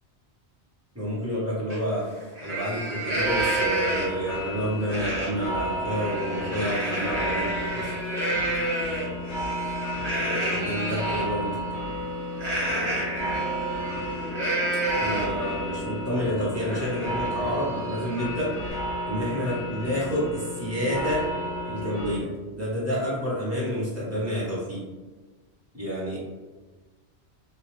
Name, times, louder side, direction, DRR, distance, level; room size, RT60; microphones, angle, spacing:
voice 1, 0.9-2.1 2.4-7.9 10.2-11.7 15.0-18.6 19.1-21.3 21.6-24.9 25.7-26.2, equal, 15° right, -8 dB, 1.0 m, -29 dB
Livestock farm animals working animals, 1.7-1.8 2.2-4.3 4.9-5.3 5.7-11.3 12.4-15.5 15.9-16.0 16.3-18.7, right 1 dB, 40° right, 0.9 m, -30 dB
sound 1, 3.2-22.2, equal, 80° left, 1.0 m, -33 dB
2.9 x 2.3 x 3.2 m, 1.3 s
omnidirectional pair, 1.2 m